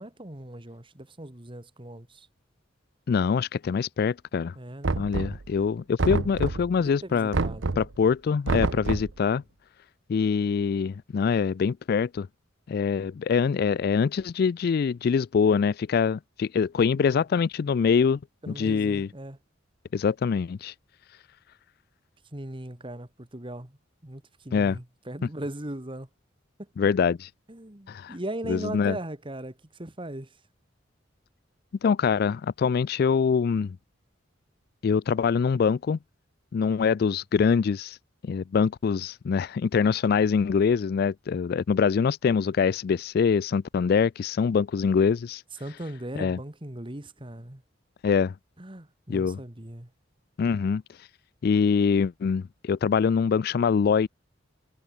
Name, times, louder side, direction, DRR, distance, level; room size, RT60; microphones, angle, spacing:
voice 1, 0.0-2.3 4.6-5.1 6.8-7.7 17.0-17.2 18.4-19.4 22.3-23.8 24.0-26.1 27.5-30.3 45.6-47.6 48.6-49.9, right 1 dB, 25° right, 1.9 m, -39 dB
voice 2, 3.1-4.5 4.9-7.4 7.8-9.4 10.1-12.3 12.7-18.2 18.5-19.1 19.9-20.7 24.5-24.8 26.8-27.3 27.9-28.1 28.5-29.0 31.8-33.8 34.8-36.0 36.5-38.0 38.2-45.4 46.2-46.4 48.0-48.3 49.1-49.4 50.4-50.8 51.4-54.1, left 6 dB, 50° left, 0.3 m, -24 dB
Knock, 4.8-5.6 6.0-6.8 7.3-8.0 8.5-9.2, right 3 dB, 75° right, 0.8 m, -27 dB
head